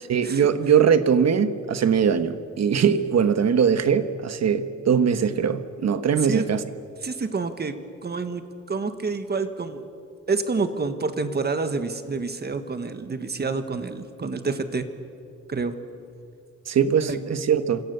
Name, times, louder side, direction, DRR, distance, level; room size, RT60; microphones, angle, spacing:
voice 1, 0.1-6.6 16.7-17.8, right 7 dB, 60° right, 10 dB, 1.5 m, -21 dB
voice 2, 7.0-7.8 8.0-8.4 8.7-9.8 10.3-14.8 15.5-15.8 17.1-17.2, right 4 dB, 35° right, 9 dB, 1.5 m, -28 dB
28.0 x 26.5 x 7.0 m, 2.5 s
wide cardioid pair, 170°, 30 cm